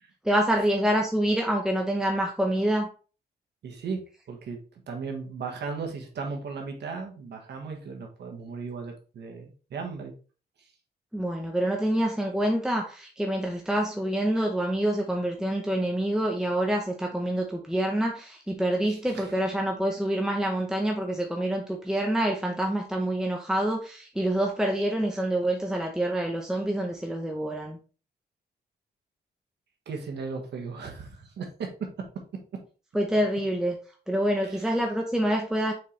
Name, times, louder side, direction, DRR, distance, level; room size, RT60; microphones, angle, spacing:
voice 1, 0.2-2.9 11.1-27.8 32.9-33.8 34.1-35.7, right 1 dB, 5° right, 1 dB, 0.8 m, -26 dB
voice 2, 3.6-4.0 4.3-10.1 10.6-10.7 18.9-19.3 29.8-32.0 34.4-34.7, right 5 dB, 90° right, 2 dB, 1.5 m, -36 dB
6.5 x 4.5 x 3.3 m, 0.37 s
wide cardioid pair, 140°, 17 cm